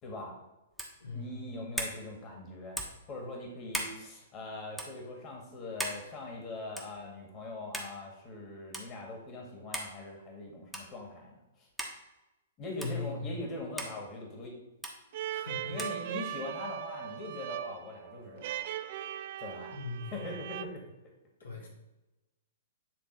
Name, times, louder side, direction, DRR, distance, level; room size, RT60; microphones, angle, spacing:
voice 1, 0.0-0.4 1.1-2.8 3.1-11.7 12.6-14.5 15.7-18.5 19.4-19.7 20.1-20.8 21.6-21.7, left 2 dB, 30° left, 0 dB, 1.9 m, -42 dB
sound 1, 0.7-1.0 1.7-2.0 2.7-3.0 3.7-4.0 4.7-4.9 5.8-6.0 6.8-7.0 7.7-7.9 8.7-8.9 9.7-9.9 10.7-10.9 11.8-11.9 12.8-12.9 13.8-13.9 14.8-15.0 15.8-16.0, equal, ahead, 1.2 m, -37 dB
voice 2, 1.0-1.6 12.8-13.4 15.3-15.9 19.7-20.2 21.4-21.7, left 3 dB, 75° left, -1 dB, 1.8 m, -40 dB
sound 2, 15.1-20.6, right 11 dB, 50° right, 0.4 m, -39 dB
9.5 x 3.3 x 4.7 m, 1.0 s
figure-of-eight pair, 115°, 0 cm